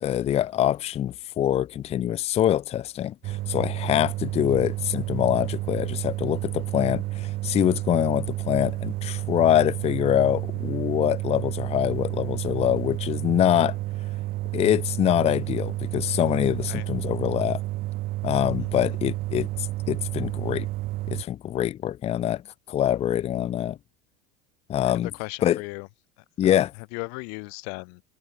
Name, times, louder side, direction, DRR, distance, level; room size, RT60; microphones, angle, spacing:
voice 1, 0.0-13.8 14.5-17.6 18.2-20.7 21.1-22.4 22.7-23.8 24.7-25.1 25.4-25.6 26.4-26.7, left 11 dB, 30° left, 0.6 m, -24 dB
sound 1, 3.2-21.2, right 17 dB, 45° right, 0.7 m, -31 dB
voice 2, 25.2-25.9 26.4-26.6 26.9-28.0, left 40 dB or more, 65° left, 0.9 m, -36 dB
supercardioid pair, 125°, 21 cm